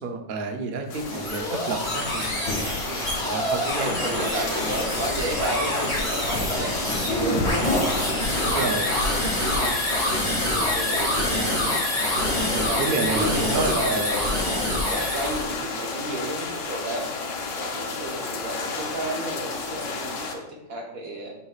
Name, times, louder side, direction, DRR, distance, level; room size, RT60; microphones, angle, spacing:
voice 1, 0.0-2.6 3.2-4.3 4.8-4.9 8.5-8.9 10.8-11.2 12.8-14.1, right 4 dB, 85° right, 3 dB, 0.4 m, -30 dB
sound 1, 0.9-20.3, left 4 dB, 75° left, 1.6 m, -33 dB
sound 2, 0.9-15.5, left 1 dB, 20° left, 2.2 m, -26 dB
voice 2, 1.0-1.3 2.8-3.1 3.8-7.6 8.3-9.8 10.5-11.9 12.5-14.3 14.8-17.1 17.5-21.3, right 1 dB, 55° right, 0 dB, 1.5 m, -33 dB
10.0 x 5.6 x 2.4 m, 0.91 s
omnidirectional pair, 1.9 m